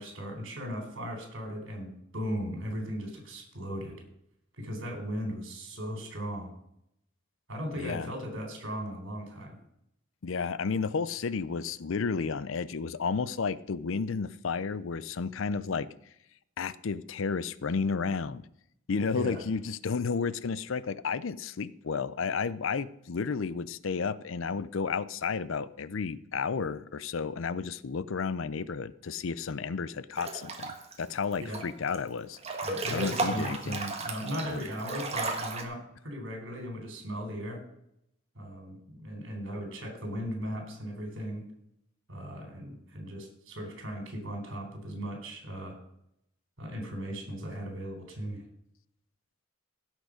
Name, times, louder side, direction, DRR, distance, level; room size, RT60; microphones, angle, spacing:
voice 1, 0.0-4.0 4.5-6.5 7.5-9.6 19.1-19.4 31.4-31.7 32.6-37.6 38.3-41.4 42.1-45.8 46.6-48.4, equal, 65° right, 3 dB, 4.0 m, -37 dB
voice 2, 7.7-8.1 10.2-15.9 16.6-18.5 18.9-32.4 32.9-33.8 34.4-34.6, left 5 dB, 70° left, 17 dB, 0.5 m, -32 dB
Breathing / Bathtub (filling or washing) / Splash splatter, 30.2-30.9 31.3-32.0 32.3-35.6, right 3 dB, 30° right, 1.5 m, -34 dB
16.5 x 6.5 x 5.1 m, 0.77 s
head